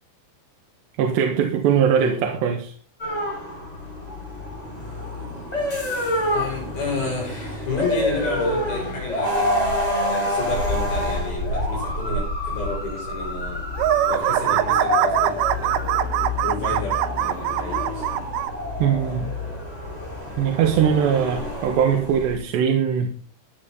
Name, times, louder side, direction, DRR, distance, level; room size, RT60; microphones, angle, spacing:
voice 1, 1.0-2.7 18.8-19.3 20.4-23.1, right 8 dB, 70° right, 3 dB, 3.5 m, -21 dB
voice 2, 1.9-2.3 6.3-9.7 10.1-13.6 14.1-15.9 16.4-18.1, left 3 dB, 65° left, -1 dB, 8.7 m, -31 dB
sound 1, 3.0-22.4, left 1 dB, 10° left, 5.6 m, -27 dB
sound 2, 13.8-18.5, right 14 dB, 90° right, 3.4 m, -22 dB
17.0 x 11.0 x 4.0 m, 0.40 s
omnidirectional pair, 5.5 m